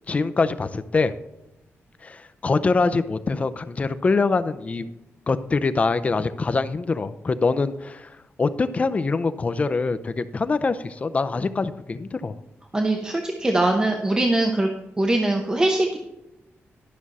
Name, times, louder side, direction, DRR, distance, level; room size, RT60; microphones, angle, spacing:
voice 1, 0.1-1.1 2.0-4.9 5.3-12.3, left 4 dB, 30° left, 12 dB, 0.5 m, -24 dB
voice 2, 12.7-14.7 15.0-16.0, right 2 dB, 15° right, 3 dB, 0.8 m, -22 dB
12.0 x 6.2 x 4.1 m, 0.93 s
wide cardioid pair, 160°, 5 cm